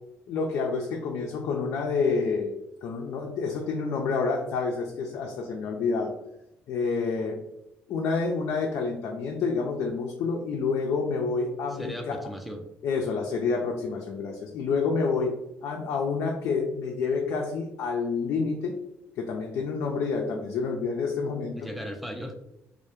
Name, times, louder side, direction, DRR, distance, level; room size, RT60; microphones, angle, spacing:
voice 1, 0.3-2.5 2.8-6.1 6.7-7.4 7.9-12.2 12.8-15.3 15.6-18.8 19.2-21.6, left 4 dB, 65° left, 1 dB, 0.3 m, -28 dB
voice 2, 11.7-12.7 21.5-22.3, equal, ahead, 4 dB, 0.4 m, -37 dB
2.2 x 2.0 x 2.8 m, 0.85 s
supercardioid pair, 70°, 5 cm